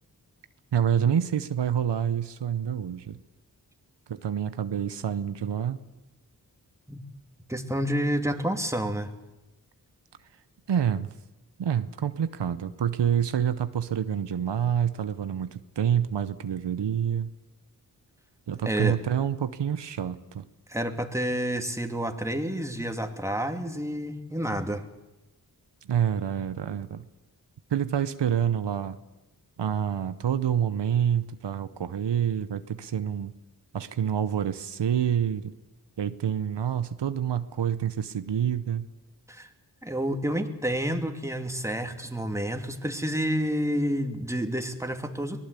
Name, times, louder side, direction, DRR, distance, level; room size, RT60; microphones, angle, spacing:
voice 1, 0.7-3.2 4.1-5.8 10.7-11.1 11.6-17.3 18.5-20.5 25.8-27.1 27.7-29.0 29.6-33.3 33.7-35.5 36.0-38.8, right 9 dB, 90° right, 13 dB, 0.9 m, -27 dB
voice 2, 7.5-9.1 18.6-19.0 20.7-24.8 39.3-39.5 39.8-45.4, equal, 5° right, 6 dB, 2.6 m, -29 dB
23.5 x 18.0 x 8.3 m, 1.0 s
cardioid pair, 45°, 41 cm